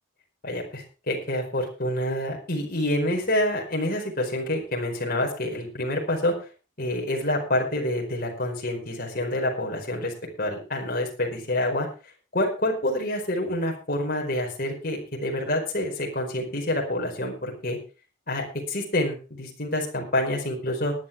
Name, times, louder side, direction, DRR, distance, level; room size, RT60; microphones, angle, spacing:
voice 1, 0.4-6.3 6.8-11.9 12.3-17.8 18.3-20.9, left 1 dB, 50° left, 0 dB, 4.7 m, -27 dB
20.0 x 10.0 x 3.5 m, 0.34 s
head